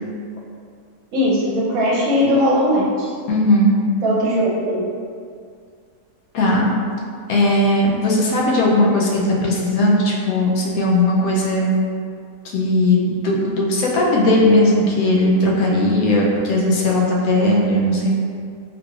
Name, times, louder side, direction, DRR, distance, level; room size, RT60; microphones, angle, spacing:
voice 1, 1.1-3.1 4.0-4.8, equal, 70° right, -5 dB, 1.1 m, -19 dB
voice 2, 3.3-3.7 6.3-6.7 7.3-11.7 12.5-18.1, left 1 dB, 75° left, -3 dB, 1.0 m, -17 dB
3.5 x 3.1 x 2.4 m, 2.2 s
omnidirectional pair, 1.6 m